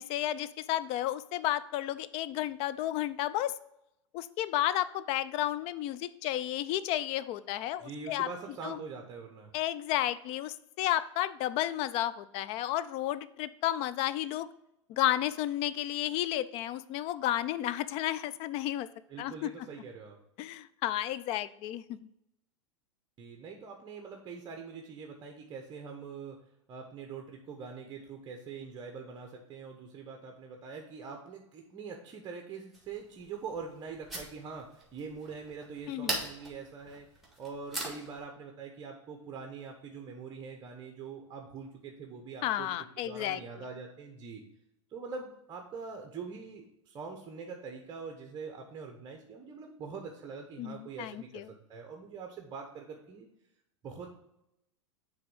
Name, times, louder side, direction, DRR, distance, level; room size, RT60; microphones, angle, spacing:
voice 1, 0.0-3.5 4.1-8.3 8.6-8.8 9.5-14.5 14.9-18.9 19.2-19.5 20.4-22.0 35.9-36.2 42.4-43.4 50.6-51.4, left 13 dB, 40° left, 15 dB, 0.4 m, -32 dB
voice 2, 7.8-9.5 19.1-20.2 23.2-26.4 26.7-37.1 37.4-42.7 43.0-44.4 44.9-53.3 53.8-54.1, right 5 dB, 25° right, 3 dB, 0.9 m, -43 dB
sound 1, 32.7-38.2, right 1 dB, ahead, 1.8 m, -41 dB
6.7 x 3.5 x 5.4 m, 0.83 s
hypercardioid pair, 115°, 15 cm